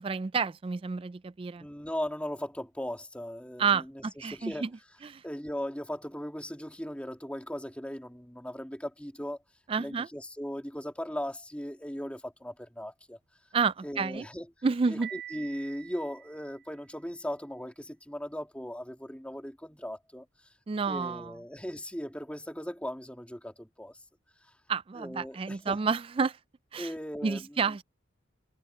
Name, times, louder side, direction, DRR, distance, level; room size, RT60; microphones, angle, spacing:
voice 1, 0.0-1.6 3.6-4.7 5.0-5.2 9.7-10.1 13.5-14.3 14.6-15.1 20.7-21.3 24.7-26.4 26.7-26.9 27.2-27.8, right 5 dB, 30° right, 0.3 m, -30 dB
voice 2, 1.6-4.7 5.2-9.4 9.8-13.2 13.8-14.5 14.9-20.3 20.9-24.0 25.0-25.8 26.8-27.6, equal, 5° left, 2.7 m, -38 dB
Piano, 15.0-17.0, right 11 dB, 70° right, 2.0 m, -45 dB
head